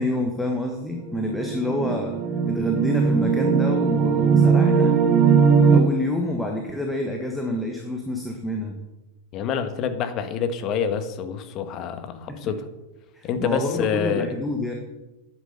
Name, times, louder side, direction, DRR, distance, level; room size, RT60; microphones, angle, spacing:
voice 1, 0.0-2.2 2.5-4.9 5.7-8.8 12.3-12.5 13.1-14.7, left 1 dB, 5° left, 1 dB, 1.5 m, -28 dB
sound 1, 1.1-5.8, right 6 dB, 25° right, 1.2 m, -19 dB
voice 2, 9.3-12.7 13.2-14.3, left 7 dB, 35° left, 9 dB, 1.4 m, -27 dB
9.8 x 9.1 x 6.8 m, 1.0 s
figure-of-eight pair, 90°, 0 cm